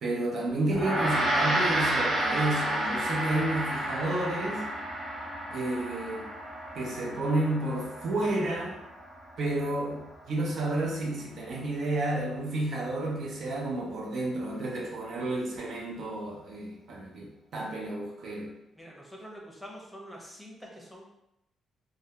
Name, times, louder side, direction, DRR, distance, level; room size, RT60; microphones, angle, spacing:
voice 1, 0.0-4.7 5.5-6.3 6.7-8.7 9.4-18.5, right 2 dB, 65° right, -2 dB, 0.5 m, -31 dB
Gong, 0.7-10.3, right 1 dB, 45° right, 0.9 m, -31 dB
voice 2, 18.7-21.1, equal, ahead, -3 dB, 0.7 m, -46 dB
2.2 x 2.2 x 2.8 m, 0.87 s
cardioid pair, 90°, 0 cm